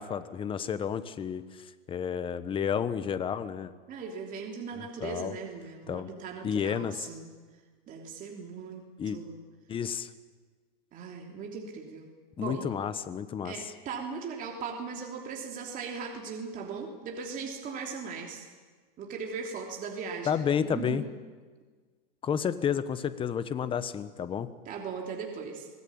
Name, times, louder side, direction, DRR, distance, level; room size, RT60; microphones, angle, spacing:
voice 1, 0.0-3.7 4.8-5.3 5.9-6.1 6.4-7.0 9.0-9.2 9.7-10.1 12.4-13.7 20.3-21.0 22.2-24.5, left 8 dB, 20° left, 13 dB, 1.1 m, -31 dB
voice 2, 3.9-7.3 7.9-9.4 10.9-12.1 12.4-12.6 13.4-18.5 19.0-21.0 24.6-25.7, right 5 dB, 30° right, 1 dB, 3.2 m, -39 dB
25.5 x 18.5 x 8.8 m, 1.5 s
supercardioid pair, 140°, 29 cm